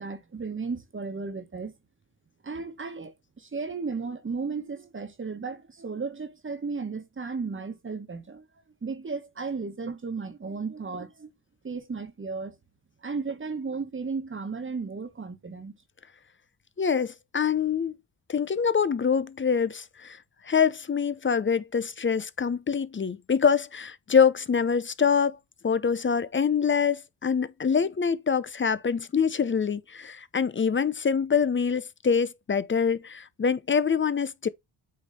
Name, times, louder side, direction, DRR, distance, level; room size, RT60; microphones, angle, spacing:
voice 1, 0.0-1.7 2.4-8.5 8.8-11.3 11.6-12.5 13.0-15.8, right 4 dB, 25° right, 1.5 m, -34 dB
voice 2, 16.8-17.9 18.3-20.2 20.4-25.4 25.6-34.5, left 6 dB, 25° left, 0.7 m, -25 dB
8.6 x 3.3 x 4.3 m
cardioid pair, 80°, 46 cm